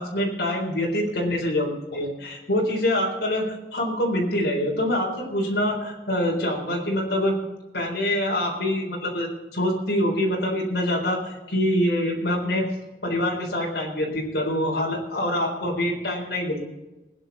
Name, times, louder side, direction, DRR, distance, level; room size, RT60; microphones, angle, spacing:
voice 1, 0.0-7.4 7.7-12.7 13.0-16.6, left 1 dB, 70° left, -1 dB, 4.0 m, -25 dB
20.5 x 10.0 x 4.1 m, 1.1 s
head